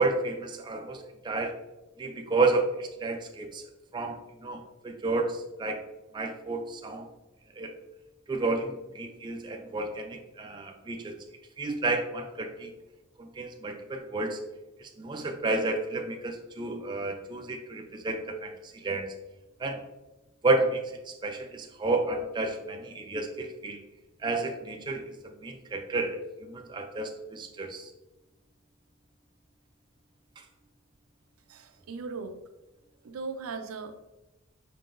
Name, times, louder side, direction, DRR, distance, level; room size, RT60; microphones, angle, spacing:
voice 1, 0.0-1.5 2.0-3.6 3.9-5.8 6.1-7.1 7.6-7.7 8.3-11.2 11.6-12.7 13.2-14.4 14.8-19.1 19.6-19.8 20.4-23.8 24.2-27.9 30.4-30.5, right 3 dB, 20° right, 3 dB, 0.3 m, -31 dB
voice 2, 31.5-32.4 33.0-34.0, right 4 dB, 75° right, 8 dB, 0.5 m, -38 dB
5.6 x 3.7 x 2.5 m, 1.0 s
head